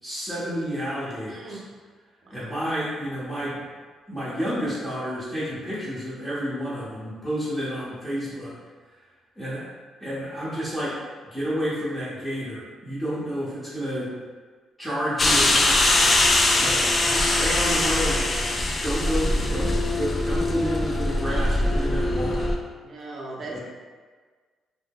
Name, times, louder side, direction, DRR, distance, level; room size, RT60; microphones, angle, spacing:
voice 1, 0.0-1.6 2.3-3.6 4.1-8.6 9.0-9.6 10.0-11.0 11.2-14.1 14.8-16.2 16.6-22.5 23.5-23.6, equal, 10° left, -11 dB, 0.8 m, -30 dB
voice 2, 1.3-1.6 2.2-2.4 22.8-23.6, right 2 dB, 55° right, -2 dB, 0.5 m, -38 dB
sound 1, 15.2-22.6, left 2 dB, 30° left, 0.3 m, -22 dB
2.2 x 2.0 x 3.5 m, 1.5 s
cardioid pair, 90°, 0 cm